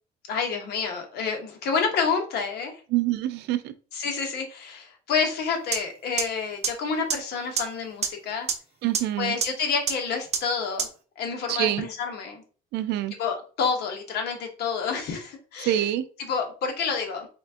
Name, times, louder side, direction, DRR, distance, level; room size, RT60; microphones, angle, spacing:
voice 1, 0.3-2.8 3.9-8.5 9.2-10.9 11.2-12.4 13.2-15.8 16.2-17.3, left 5 dB, 75° left, 3 dB, 1.2 m, -28 dB
voice 2, 2.9-3.7 8.8-9.3 11.5-11.9 12.7-13.1 15.6-16.0, right 13 dB, 85° right, 11 dB, 0.5 m, -25 dB
sound 1, 5.7-5.8 6.2-6.3 6.6-6.7 7.1-7.2 7.6-7.7 8.0-8.1 8.5-8.6 8.9-9.0 9.4-9.5 9.9-10.0 10.3-10.4 10.8-10.9, right 6 dB, 40° right, 0.8 m, -24 dB
4.2 x 3.4 x 2.8 m, 0.38 s
cardioid pair, 110°, 17 cm